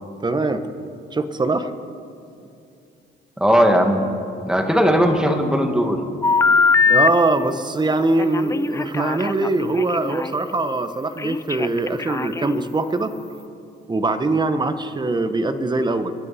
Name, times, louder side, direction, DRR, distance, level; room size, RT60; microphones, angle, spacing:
voice 1, 0.2-0.7 1.1-1.7 6.9-13.1 13.9-16.1, right 2 dB, 20° right, 9 dB, 1.0 m, -22 dB
voice 2, 3.4-4.1 4.4-6.0, equal, 5° right, 4 dB, 1.8 m, -17 dB
Telephone, 6.2-7.1 8.2-10.3 11.2-12.6, left 4 dB, 15° left, 0.3 m, -21 dB
26.0 x 10.5 x 4.2 m, 2.5 s
cardioid pair, 90°, 20 cm